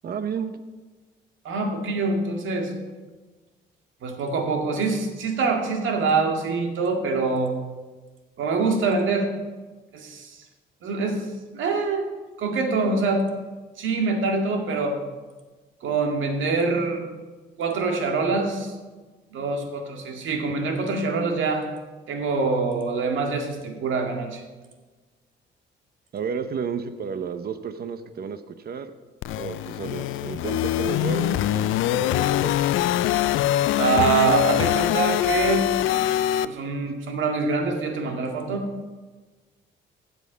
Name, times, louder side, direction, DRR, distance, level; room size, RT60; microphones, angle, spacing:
voice 1, 0.0-0.6 26.1-28.9 29.4-32.5, right 6 dB, 50° right, 10 dB, 0.9 m, -32 dB
voice 2, 1.4-2.7 4.0-7.6 8.4-9.3 9.9-10.4 10.8-11.2 11.5-12.0 12.4-13.2 13.8-15.0 15.8-17.0 17.6-18.7 19.3-21.7 22.1-24.4 33.8-35.7 36.4-38.7, right 4 dB, 75° right, 3 dB, 2.0 m, -24 dB
sound 1, 29.2-36.5, left 13 dB, 80° left, 0.5 m, -23 dB
15.5 x 7.0 x 5.7 m, 1.3 s
cardioid pair, 90°, 20 cm